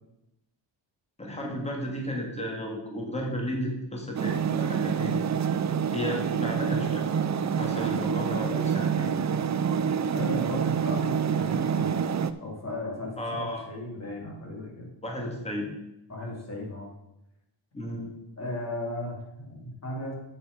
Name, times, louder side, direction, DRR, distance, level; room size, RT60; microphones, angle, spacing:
voice 1, 1.2-5.2 5.9-7.0 7.6-9.2 13.2-13.6 15.0-15.7 17.7-18.1, equal, 15° left, 0 dB, 2.2 m, -33 dB
sound 1, 4.1-12.3, right 7 dB, 40° right, 0.5 m, -27 dB
voice 2, 10.1-12.0 12.4-14.9 16.1-16.9 18.4-20.1, left 1 dB, 35° left, -1 dB, 3.0 m, -36 dB
8.3 x 7.8 x 5.1 m, 0.88 s
wide cardioid pair, 145°, 45 cm